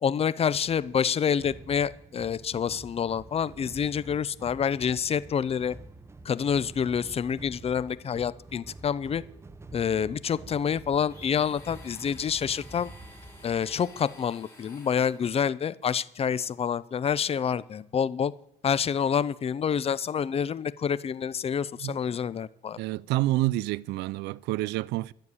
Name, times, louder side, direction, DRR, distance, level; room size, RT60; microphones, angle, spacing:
voice 1, 0.0-5.7 6.2-9.2 9.7-12.9 13.4-18.3 18.6-22.8, left 7 dB, 35° left, 0.7 m, -27 dB
sound 1, 0.6-14.2, right 2 dB, 15° right, 0.8 m, -48 dB
Domestic sounds home sounds, 11.0-15.5, left 2 dB, 10° left, 5.6 m, -52 dB
voice 2, 22.8-25.1, right 17 dB, 85° right, 0.4 m, -28 dB
12.5 x 6.8 x 9.6 m
cardioid pair, 110°, 17 cm